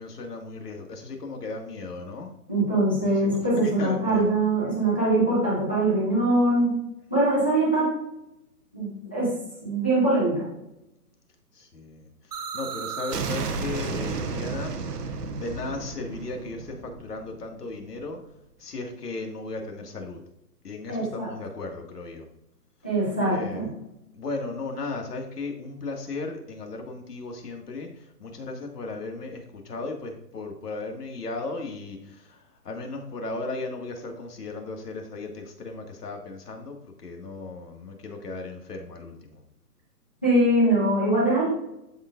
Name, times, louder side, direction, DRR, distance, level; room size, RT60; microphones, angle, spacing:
voice 1, 0.0-2.3 3.1-4.3 11.6-12.1 12.5-14.7 15.4-18.2 18.6-20.2 20.6-22.3 23.3-23.7 24.1-27.9 28.2-39.4, left 3 dB, 75° left, 3 dB, 2.1 m, -36 dB
voice 2, 2.5-6.7 7.1-7.9 8.7-9.3 9.6-10.4 20.9-21.3 22.8-23.7 40.2-41.4, right 1 dB, 5° left, -9 dB, 0.5 m, -22 dB
sound 1, 12.3-18.0, right 4 dB, 75° right, 1.2 m, -33 dB
12.5 x 4.8 x 2.6 m, 0.84 s
hypercardioid pair, 160°, 47 cm